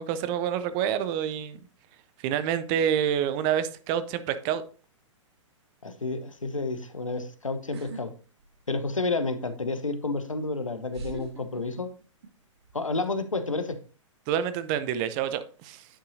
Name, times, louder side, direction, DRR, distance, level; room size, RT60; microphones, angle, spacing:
voice 1, 0.0-1.6 2.2-4.6 14.3-15.9, right 9 dB, 30° right, 0.6 m, -27 dB
voice 2, 5.8-8.1 8.7-11.9 12.7-13.8, left 3 dB, 85° left, 0.9 m, -30 dB
sound 1, 7.7-8.0 8.4-9.0 10.1-10.2 10.9-12.3 12.6-13.0, right 4 dB, 55° right, 1.3 m, -42 dB
9.7 x 5.5 x 2.7 m
figure-of-eight pair, 115°, 16 cm